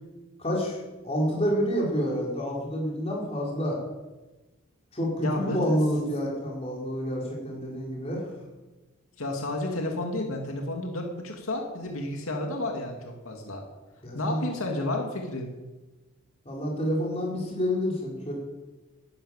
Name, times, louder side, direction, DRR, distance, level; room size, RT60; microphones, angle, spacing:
voice 1, 0.4-3.8 4.9-8.3 14.0-14.5 16.4-18.3, equal, 30° left, -3 dB, 4.6 m, -28 dB
voice 2, 5.2-5.8 7.5-7.6 9.2-13.6 14.1-15.5, left 2 dB, 80° left, 2 dB, 2.3 m, -31 dB
13.5 x 10.5 x 8.9 m, 1.1 s
head